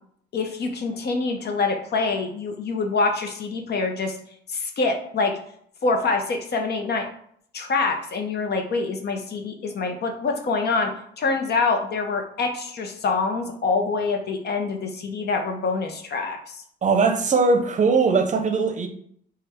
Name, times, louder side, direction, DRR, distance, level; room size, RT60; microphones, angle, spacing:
voice 1, 0.3-4.2 4.5-5.3 5.8-7.1 7.5-10.9 11.2-16.6, left 4 dB, 55° left, 4 dB, 0.8 m, -25 dB
voice 2, 16.8-18.9, right 4 dB, 40° right, 6 dB, 0.6 m, -20 dB
3.4 x 2.4 x 4.3 m, 0.65 s
cardioid pair, 90°, 20 cm